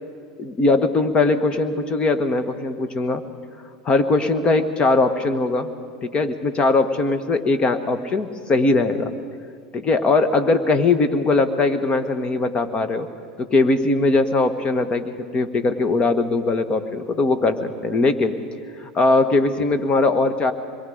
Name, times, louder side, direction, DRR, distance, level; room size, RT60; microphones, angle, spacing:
voice 1, 0.4-3.2 3.8-5.7 6.0-9.1 9.7-13.1 13.4-18.3 18.8-20.5, left 3 dB, 30° left, 9 dB, 1.6 m, -20 dB
25.5 x 22.0 x 5.1 m, 2.2 s
hypercardioid pair, 90°, 3 cm